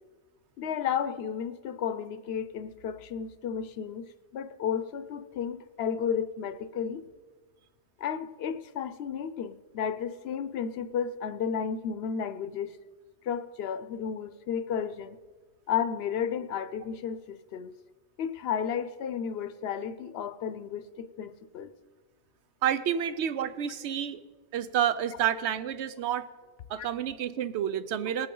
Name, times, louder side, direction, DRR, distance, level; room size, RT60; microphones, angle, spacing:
voice 1, 0.6-4.1 4.3-7.0 8.0-12.7 13.2-15.2 15.7-17.7 18.2-21.7 26.8-26.9, left 7 dB, 70° left, 14 dB, 0.8 m, -33 dB
voice 2, 22.6-24.2 24.5-26.3 26.7-28.3, right 9 dB, 85° right, 14 dB, 0.9 m, -29 dB
19.5 x 8.8 x 3.8 m, 1.4 s
omnidirectional pair, 1.1 m